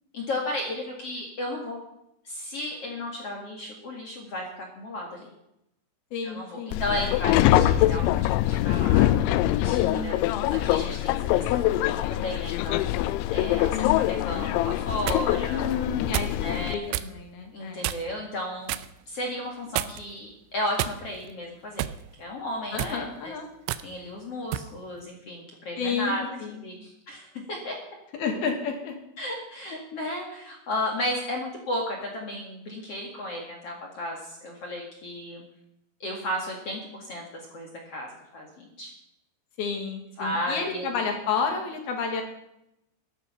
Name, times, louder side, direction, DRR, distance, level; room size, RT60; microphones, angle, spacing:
voice 1, 0.1-1.8 2.2-5.3 6.2-9.1 9.6-10.2 10.5-12.9 13.3-15.7 16.3-16.8 17.5-18.8 19.1-21.8 22.2-23.3 23.8-26.2 26.5-27.8 29.2-35.4 36.0-38.9 40.2-40.9, left 1 dB, 45° left, 0 dB, 2.0 m, -34 dB
voice 2, 6.1-6.8 9.8-10.5 15.5-17.9 22.7-23.5 25.8-26.6 28.2-28.9 39.6-42.2, left 5 dB, 65° left, 4 dB, 3.2 m, -31 dB
Subway metro underground, 6.7-16.7, left 14 dB, 85° left, 2.9 m, -24 dB
sound 1, 14.7-15.2 16.1-16.4 16.9-17.1 17.8-18.2 18.7-18.9 19.7-20.2 20.8-21.3 21.8-22.0 22.7-23.0 23.7-23.9 24.5-24.7, right 13 dB, 80° right, 2.9 m, -30 dB
15.0 x 12.5 x 5.7 m, 0.83 s
omnidirectional pair, 5.4 m